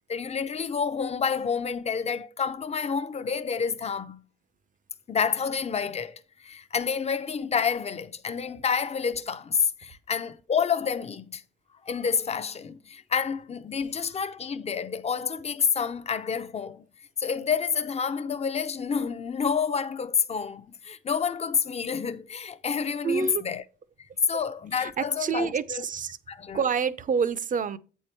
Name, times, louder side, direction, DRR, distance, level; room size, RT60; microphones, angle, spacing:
voice 1, 0.1-4.2 5.1-11.4 11.9-16.8 17.2-23.6 24.3-25.8 26.3-26.6, left 6 dB, 30° left, 0.6 m, -29 dB
voice 2, 23.0-23.4 24.7-26.2 26.5-27.8, right 6 dB, 40° right, 0.6 m, -27 dB
8.1 x 4.5 x 4.5 m
cardioid pair, 90°, 20 cm